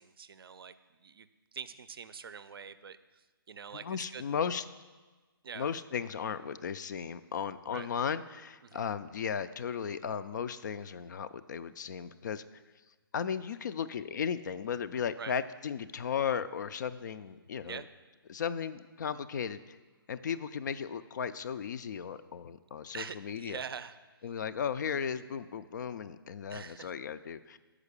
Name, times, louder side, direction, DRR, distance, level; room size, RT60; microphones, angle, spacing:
voice 1, 0.0-4.2 5.4-5.7 7.7-7.9 8.6-8.8 15.2-15.3 17.6-17.9 22.9-24.3 26.5-27.0, right 6 dB, 70° right, 13 dB, 0.4 m, -45 dB
voice 2, 3.8-4.6 5.5-12.4 13.1-17.8 18.3-19.8 20.1-23.6 24.2-27.6, left 7 dB, 50° left, 13 dB, 0.3 m, -35 dB
6.4 x 4.9 x 6.8 m, 1.3 s
hypercardioid pair, 150°, 12 cm